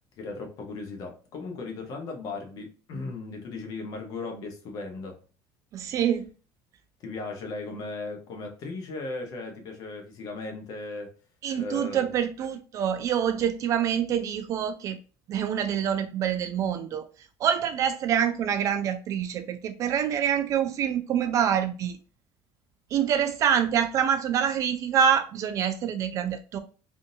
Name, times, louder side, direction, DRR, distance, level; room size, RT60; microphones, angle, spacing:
voice 1, 0.2-5.2 7.0-11.1 11.6-12.1, left 3 dB, 45° left, 1.0 m, -37 dB
voice 2, 5.7-6.3 11.4-15.0 15.3-17.0 17.4-22.0 22.9-26.6, right 8 dB, 35° right, 0.3 m, -26 dB
3.7 x 2.6 x 2.6 m
cardioid pair, 160°, 9 cm